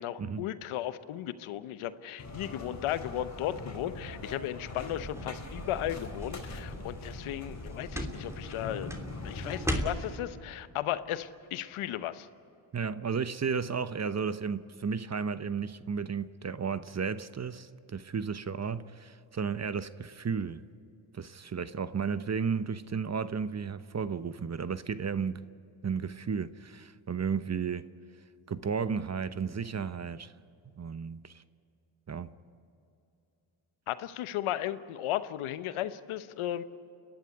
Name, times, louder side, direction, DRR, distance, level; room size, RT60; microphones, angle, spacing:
voice 1, 0.0-8.9 9.2-12.3 33.9-36.6, left 12 dB, 85° left, 1.0 m, -35 dB
sound 1, 2.2-9.8, left 2 dB, 35° left, 3.7 m, -42 dB
sound 2, 4.7-10.2, equal, 5° right, 3.0 m, -38 dB
voice 2, 12.7-20.6 21.1-25.4 25.8-27.9 28.5-30.3 30.8-31.4 32.1-32.3, right 6 dB, 35° right, 0.9 m, -33 dB
29.5 x 11.5 x 9.8 m
cardioid pair, 65°, 48 cm